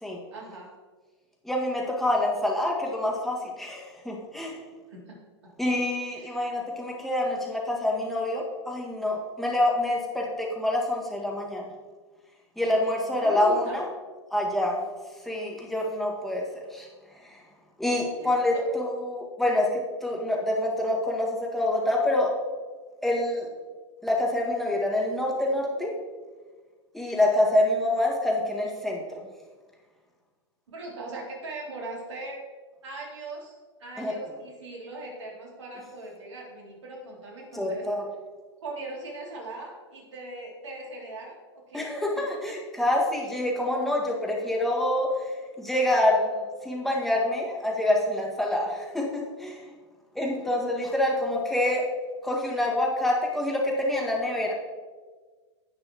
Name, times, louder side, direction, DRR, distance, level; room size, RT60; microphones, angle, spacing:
voice 1, 0.3-0.7 4.9-5.2 6.1-6.4 12.8-13.8 18.1-18.6 30.7-32.4 32.8-37.9 38.6-41.9, right 2 dB, 75° right, -2 dB, 3.1 m, -40 dB
voice 2, 1.4-4.6 5.6-11.7 12.6-13.8 14.3-14.8 15.2-16.9 17.2-17.4 17.8-22.4 23.0-23.5 24.0-25.9 26.9-29.2 34.0-34.1 37.5-38.1 41.7-49.6 50.2-51.8 52.2-54.5, left 1 dB, ahead, -3 dB, 2.0 m, -26 dB
16.0 x 6.2 x 3.1 m, 1.4 s
hypercardioid pair, 100°, 15 cm